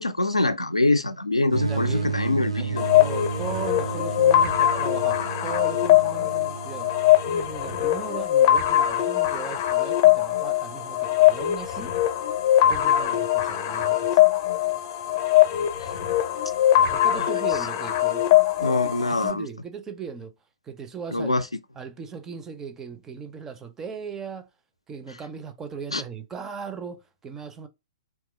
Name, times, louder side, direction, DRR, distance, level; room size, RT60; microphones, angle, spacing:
voice 1, 0.0-2.9 15.8-15.9 17.1-17.3 18.6-19.5 21.1-21.5 25.9-26.0, left 2 dB, 85° left, 0.4 m, -24 dB
voice 2, 1.3-2.1 2.6-6.9 7.3-12.0 12.7-14.2 16.9-18.2 18.6-18.8 19.1-20.3 20.6-21.4 21.8-24.5 24.9-27.7, right 5 dB, 15° right, 0.4 m, -38 dB
sound 1, 1.5-8.1, right 5 dB, 80° right, 0.5 m, -32 dB
sound 2, 2.8-19.3, left 12 dB, 40° left, 0.6 m, -21 dB
2.9 x 2.3 x 3.2 m
figure-of-eight pair, 115°, 3 cm